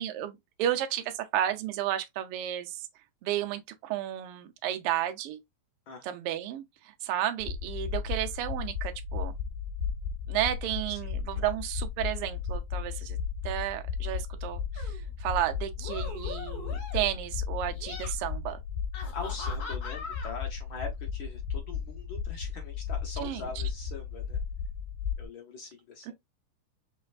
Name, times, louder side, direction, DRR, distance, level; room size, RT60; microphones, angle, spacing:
voice 1, 0.0-2.9 3.2-5.4 6.0-6.6 7.0-9.3 10.3-13.2 13.4-14.9 15.2-18.6 23.2-23.4 26.1-26.2, right 12 dB, 70° right, 1.4 m, -32 dB
sound 1, 7.4-25.3, left 6 dB, 90° left, 2.1 m, -35 dB
sound 2, 14.7-15.0 15.8-17.2 17.7-18.1 18.9-20.3, left 4 dB, 45° left, 1.5 m, -41 dB
voice 2, 19.1-24.4 25.2-26.1, left 3 dB, 75° left, 1.1 m, -42 dB
5.4 x 3.4 x 2.4 m
omnidirectional pair, 3.3 m